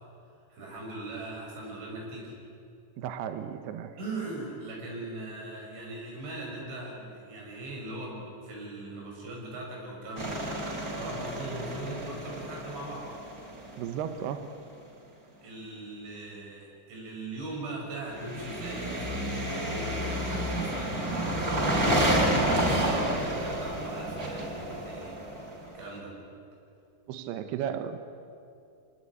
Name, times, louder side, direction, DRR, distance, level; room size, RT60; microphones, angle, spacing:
voice 1, 0.5-2.3 4.0-10.4 11.0-13.1 15.4-19.3 19.7-25.2 25.7-26.1, right 2 dB, 90° right, -1 dB, 8.5 m, -40 dB
voice 2, 3.0-4.0 13.8-14.7 27.1-28.0, right 9 dB, 75° right, 9 dB, 2.8 m, -35 dB
sound 1, 10.2-14.0 18.2-25.8, right 1 dB, 20° right, 4.1 m, -30 dB
26.5 x 19.0 x 9.7 m, 2.6 s
omnidirectional pair, 5.2 m